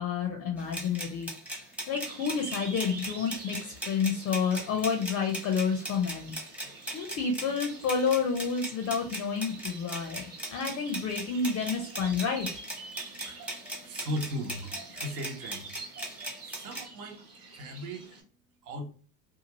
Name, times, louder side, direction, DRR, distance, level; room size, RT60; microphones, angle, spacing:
voice 1, 0.0-6.3 6.9-10.2 10.5-12.5, left 6 dB, 30° left, 3 dB, 0.5 m, -30 dB
sound 1, 0.6-16.8, right 1 dB, 5° right, 0.7 m, -39 dB
sound 2, 2.1-18.2, right 3 dB, 30° right, 1.0 m, -47 dB
voice 2, 12.9-15.8 16.4-17.2 17.5-18.1 18.6-18.9, equal, 65° right, 3 dB, 1.0 m, -38 dB
2.6 x 2.3 x 2.9 m, 0.41 s
hypercardioid pair, 95°, 48 cm